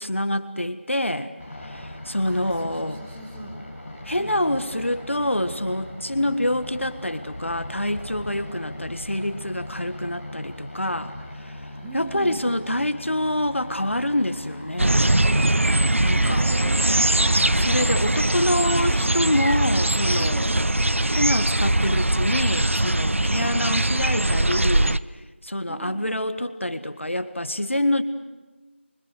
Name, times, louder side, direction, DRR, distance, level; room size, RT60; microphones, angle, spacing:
voice 1, 0.0-1.3 1.6-3.0 4.0-11.1 11.4-11.6 11.9-15.1 16.0-16.5 17.6-20.5 21.1-25.0 25.4-28.0, left 1 dB, 80° left, 10 dB, 1.7 m, -26 dB
sound 1, 1.4-18.3, left 1 dB, 15° left, 4.9 m, -38 dB
voice 2, 2.2-3.6 4.2-4.6 6.2-6.5 11.8-12.5 16.1-17.5 18.3-19.5 20.2-20.6 23.4-23.7 25.7-26.1, right 2 dB, 5° right, -3 dB, 1.2 m, -39 dB
sound 2, 14.8-25.0, right 1 dB, 85° right, 0.8 m, -21 dB
29.0 x 24.5 x 6.6 m, 1.2 s
figure-of-eight pair, 175°, 7 cm